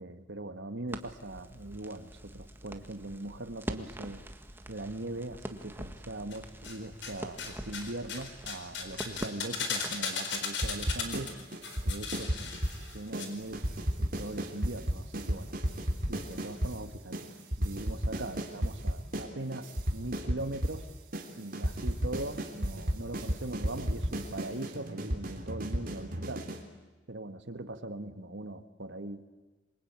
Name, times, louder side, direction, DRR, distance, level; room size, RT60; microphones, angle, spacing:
voice 1, 0.0-4.2 4.7-11.3 11.8-12.5 12.8-13.7 14.0-15.5 16.1-17.2 17.6-20.9 21.4-26.6 27.1-29.2, right 2 dB, 80° right, 9 dB, 1.7 m, -40 dB
Crackle, 0.9-10.1, right 1 dB, 10° right, 1.6 m, -44 dB
sound 1, 6.3-7.1 7.4-13.3 13.5-13.6, left 5 dB, 80° left, 4.4 m, -36 dB
sound 2, 10.6-11.3 11.5-12.8 13.1-13.3 13.5-16.7 17.1-17.2 17.5-19.3 19.5-20.8 21.1-21.3 21.5-26.6, equal, 50° right, 3.5 m, -32 dB
27.0 x 23.5 x 8.9 m, 1.3 s
head